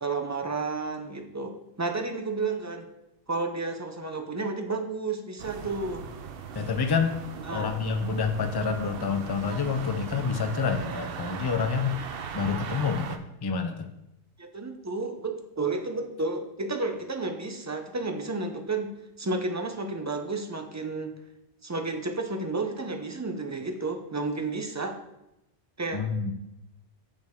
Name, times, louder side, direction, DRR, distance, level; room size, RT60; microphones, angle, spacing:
voice 1, 0.0-2.9 3.3-6.0 7.4-7.7 14.4-21.1 21.6-25.0 25.8-26.0, right 3 dB, 20° right, 5 dB, 0.5 m, -31 dB
sound 1, 5.4-13.2, right 6 dB, 60° right, 0.7 m, -39 dB
voice 2, 6.5-7.2 7.5-12.0 12.3-13.9 25.9-26.3, left 5 dB, 30° left, 6 dB, 0.5 m, -28 dB
6.5 x 6.5 x 3.6 m, 0.89 s
omnidirectional pair, 1.2 m